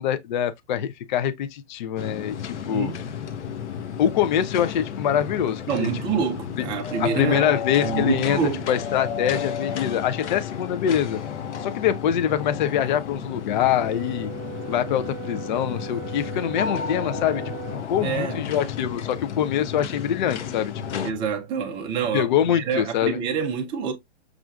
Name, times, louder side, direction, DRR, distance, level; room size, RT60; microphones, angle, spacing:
voice 1, 0.0-2.9 4.0-5.9 7.0-8.4 8.7-11.2 11.6-14.3 14.7-17.4 17.7-21.1 22.1-23.2, left 9 dB, 45° left, 0.4 m, -24 dB
sound 1, 2.0-21.1, left 7 dB, 75° left, 0.8 m, -32 dB
voice 2, 2.7-3.0 5.7-7.5 7.8-8.7 18.0-18.5 21.0-23.9, right 6 dB, 15° right, 0.5 m, -27 dB
Brass instrument, 13.6-17.9, right 13 dB, 30° right, 0.9 m, -39 dB
6.2 x 2.4 x 2.3 m
hypercardioid pair, 145°, 35 cm